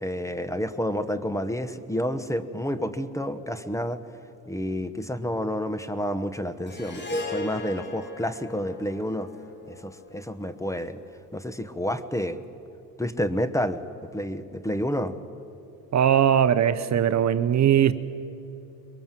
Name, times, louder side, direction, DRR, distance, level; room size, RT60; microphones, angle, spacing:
voice 1, 0.0-4.0 4.5-9.3 9.7-11.0 11.3-12.4 13.0-15.2, equal, 10° left, 1.1 m, -29 dB
Harp, 6.7-11.1, left 2 dB, 25° left, 3.5 m, -37 dB
voice 2, 15.9-17.9, right 9 dB, 45° right, 0.8 m, -20 dB
23.0 x 22.5 x 7.5 m
cardioid pair, 95°, 40 cm